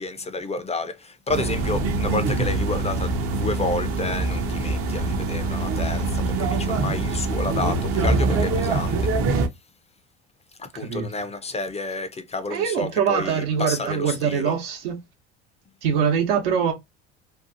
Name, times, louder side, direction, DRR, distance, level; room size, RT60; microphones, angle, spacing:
voice 1, 0.0-9.0 10.7-14.5, left 3 dB, 20° left, 0.5 m, -30 dB
sound 1, 1.3-9.5, right 3 dB, 40° right, 0.6 m, -24 dB
voice 2, 10.7-11.1 12.5-15.0 15.8-16.7, right 7 dB, 75° right, 1.0 m, -23 dB
2.7 x 2.3 x 2.5 m
hypercardioid pair, 70°, 35 cm